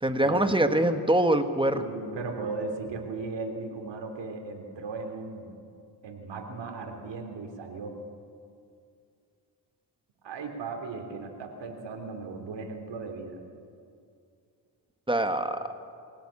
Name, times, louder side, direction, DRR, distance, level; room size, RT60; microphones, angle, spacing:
voice 1, 0.0-1.8 15.1-15.6, right 1 dB, 10° right, 8 dB, 1.5 m, -24 dB
voice 2, 1.7-5.5 6.0-8.0 10.2-13.4, right 4 dB, 80° right, 3 dB, 3.2 m, -37 dB
23.0 x 17.5 x 8.7 m, 2.4 s
cardioid pair, 90°, 43 cm